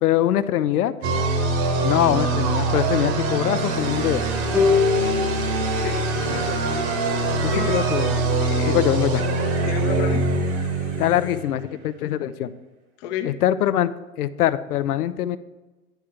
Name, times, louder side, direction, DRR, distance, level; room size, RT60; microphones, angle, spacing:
voice 1, 0.0-0.9 1.8-4.3 6.3-6.4 7.4-8.2 8.7-9.2 11.0-12.5 13.2-13.9 14.2-15.4, left 12 dB, 80° left, 15 dB, 0.6 m, -23 dB
sound 1, 1.0-11.7, right 3 dB, 50° right, 1.3 m, -24 dB
sound 2, 3.6-11.4, left 6 dB, 20° left, 1.1 m, -35 dB
sound 3, 4.5-7.8, left 5 dB, ahead, 0.3 m, -25 dB
voice 2, 5.7-6.6 7.2-7.8 8.4-8.8 9.1-9.2 9.6-10.3 13.0-13.4, left 10 dB, 40° left, 8 dB, 0.8 m, -32 dB
10.0 x 3.6 x 5.7 m, 1.2 s
hypercardioid pair, 125°, 44 cm